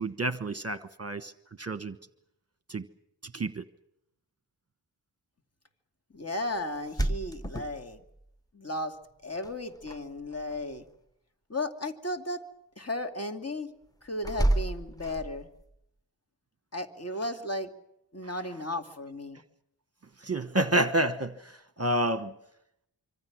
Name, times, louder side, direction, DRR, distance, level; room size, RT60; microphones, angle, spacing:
voice 1, 0.0-1.3 1.6-2.0 2.7-2.9 3.3-3.6 20.2-22.3, right 1 dB, 35° right, 1.1 m, -29 dB
voice 2, 6.1-8.0 8.5-8.9 9.2-10.8 11.5-12.4 12.8-13.7 14.0-15.5 16.7-17.7 18.1-19.4, left 1 dB, 35° left, 2.7 m, -35 dB
sound 1, 6.7-8.3 9.4-10.0 10.3-10.8 14.2-15.6, right 1 dB, 10° left, 1.5 m, -30 dB
26.0 x 25.0 x 6.3 m
wide cardioid pair, 100°, 44 cm